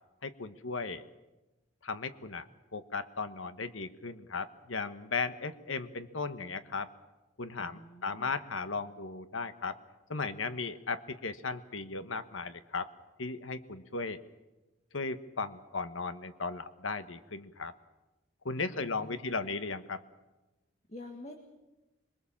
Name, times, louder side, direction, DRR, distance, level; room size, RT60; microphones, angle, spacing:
voice 1, 0.2-1.1 1.8-2.4 2.7-6.9 7.4-9.8 10.1-12.9 13.2-14.2 14.9-17.7 18.4-20.0, left 4 dB, 90° left, 11 dB, 1.3 m, -36 dB
voice 2, 7.6-8.4 18.5-19.5 20.9-21.3, left 1 dB, 35° left, 4 dB, 1.9 m, -48 dB
26.5 x 22.0 x 7.3 m, 1.1 s
head